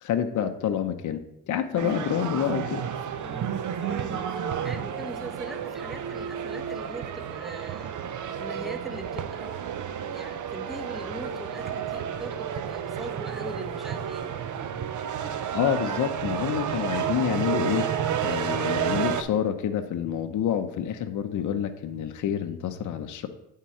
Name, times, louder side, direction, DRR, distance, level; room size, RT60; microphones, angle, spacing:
voice 1, 0.0-2.8 15.5-17.9 18.2-23.3, left 9 dB, 50° left, 7 dB, 0.7 m, -28 dB
sound 1, 1.8-19.2, right 8 dB, 50° right, 0.7 m, -31 dB
voice 2, 3.2-8.0 8.4-9.6 10.1-14.5, right 1 dB, ahead, 4 dB, 1.0 m, -41 dB
9.0 x 3.7 x 4.3 m, 0.87 s
cardioid pair, 85°, 38 cm